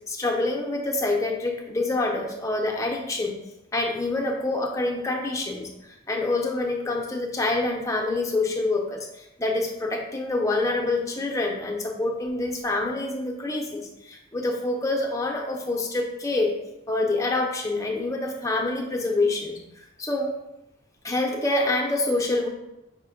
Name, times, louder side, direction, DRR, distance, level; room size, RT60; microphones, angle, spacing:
voice 1, 0.1-3.3 3.7-16.6 16.9-20.4 21.0-22.5, left 2 dB, 15° left, 1 dB, 0.5 m, -26 dB
4.9 x 2.1 x 4.8 m, 0.91 s
head